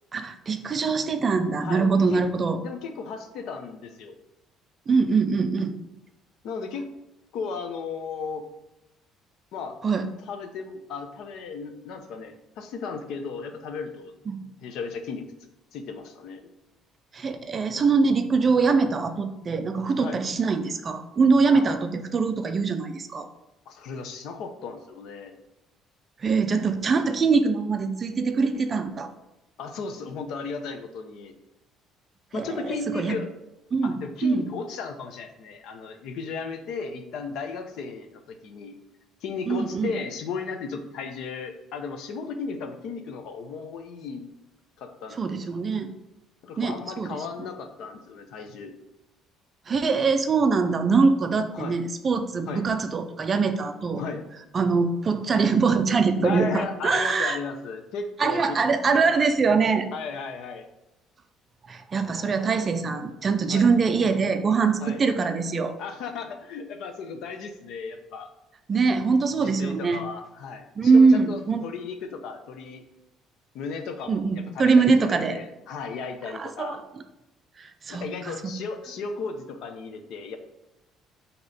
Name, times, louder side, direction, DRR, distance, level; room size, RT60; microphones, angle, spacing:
voice 1, 0.1-2.6 4.9-5.8 9.8-10.0 14.3-14.4 17.1-23.3 26.2-29.1 32.3-33.2 33.7-34.5 39.5-39.9 45.1-45.9 46.6-47.2 49.7-54.0 54.5-57.4 58.2-59.9 61.7-65.8 68.7-70.1 70.8-71.6 74.1-75.4 76.3-76.8 77.6-78.3, right 4 dB, 25° right, 8 dB, 0.4 m, -23 dB
voice 2, 1.6-2.2 2.6-4.1 6.4-6.9 7.3-8.5 9.5-9.8 10.3-14.1 14.6-15.3 15.7-16.4 20.0-20.2 21.5-21.7 23.7-25.3 29.6-31.4 32.3-33.3 33.8-38.8 39.2-44.3 44.8-45.4 46.4-48.8 51.5-51.8 52.5-52.6 54.0-54.3 56.2-58.6 59.9-60.6 63.5-63.7 64.8-65.0 65.8-68.3 69.4-72.8 73.5-76.8 77.9-80.4, left 5 dB, 60° left, 7 dB, 0.7 m, -35 dB
8.4 x 2.9 x 4.1 m, 0.94 s
cardioid pair, 170°, 0 cm